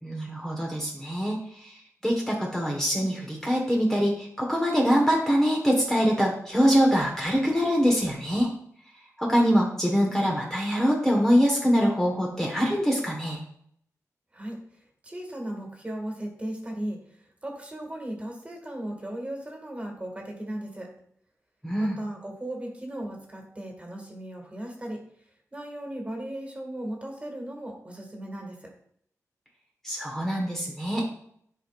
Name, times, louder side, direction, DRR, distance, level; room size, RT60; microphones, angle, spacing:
voice 1, 0.0-8.5 9.2-13.4 21.6-22.0 29.8-31.0, equal, 5° left, -2 dB, 1.3 m, -24 dB
voice 2, 14.3-20.9 21.8-25.0 25.5-28.7, right 1 dB, 20° right, 1 dB, 1.9 m, -37 dB
11.5 x 5.0 x 2.5 m, 0.67 s
wide cardioid pair, 105°, 6 cm